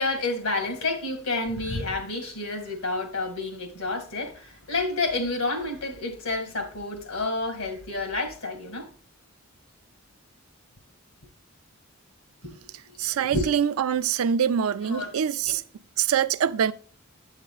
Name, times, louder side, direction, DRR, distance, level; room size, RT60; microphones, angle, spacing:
voice 1, 0.0-8.9 12.4-12.6 12.9-13.5 14.8-15.1 15.5-15.6, left 2 dB, 80° left, 1.9 m, -29 dB
voice 2, 13.0-15.6 16.0-16.7, right 8 dB, 85° right, 0.4 m, -24 dB
8.8 x 8.3 x 2.3 m
head